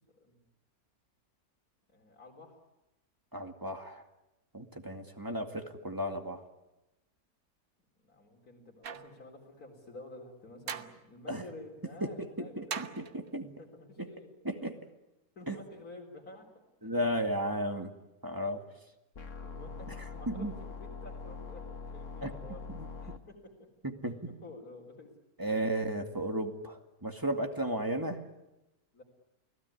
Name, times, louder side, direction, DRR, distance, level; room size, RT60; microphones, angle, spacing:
voice 1, 1.9-2.6 5.1-5.2 8.0-12.9 13.3-14.3 14.6-14.7 15.4-16.9 19.4-22.7 23.0-23.4 24.0-25.1 28.9-29.0, left 2 dB, 80° left, -1 dB, 4.5 m, -51 dB
voice 2, 3.3-4.0 4.5-6.4 11.3-11.4 12.0-13.5 14.0-14.1 14.4-14.8 15.5-15.6 16.8-17.9 18.2-18.6 20.3-20.5 22.2-22.3 22.7-22.9 23.8-24.2 25.4-28.2, right 1 dB, 15° right, 5 dB, 2.1 m, -34 dB
sound 1, 8.8-9.2 10.7-11.0 12.7-13.3, right 7 dB, 70° right, 1.5 m, -39 dB
sound 2, 19.2-23.2, left 4 dB, 55° left, 1.7 m, -43 dB
29.5 x 18.0 x 9.7 m, 0.96 s
omnidirectional pair, 1.6 m